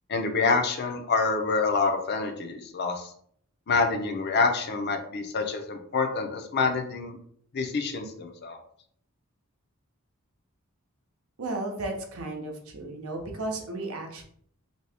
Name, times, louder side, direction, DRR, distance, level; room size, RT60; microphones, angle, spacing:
voice 1, 0.1-3.1 3.7-7.2 7.5-8.6, left 4 dB, 50° left, 4 dB, 0.5 m, -27 dB
voice 2, 11.4-14.2, right 2 dB, 75° right, 2 dB, 0.7 m, -34 dB
2.8 x 2.8 x 3.4 m, 0.63 s
head